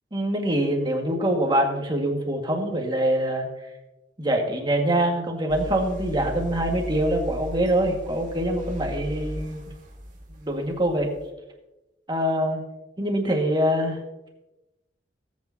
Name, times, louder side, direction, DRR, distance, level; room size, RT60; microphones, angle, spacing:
voice 1, 0.1-3.7 4.2-9.6 10.4-11.1 12.1-12.6 13.0-14.0, right 1 dB, 25° right, 1 dB, 1.9 m, -24 dB
sound 1, 5.5-11.3, equal, 45° right, 2.0 m, -36 dB
19.0 x 8.6 x 2.8 m, 1.0 s
head